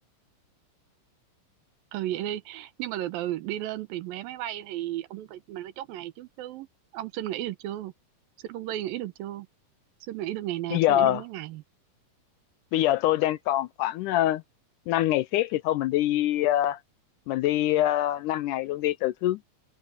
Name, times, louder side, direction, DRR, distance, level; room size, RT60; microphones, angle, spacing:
voice 1, 1.9-6.7 6.9-7.9 8.4-9.5 10.1-11.6, right 13 dB, 85° right, 2.8 m, -34 dB
voice 2, 10.7-11.2 12.7-14.4 14.9-16.8 17.3-19.4, left 13 dB, 80° left, 1.9 m, -24 dB
omnidirectional pair, 4.0 m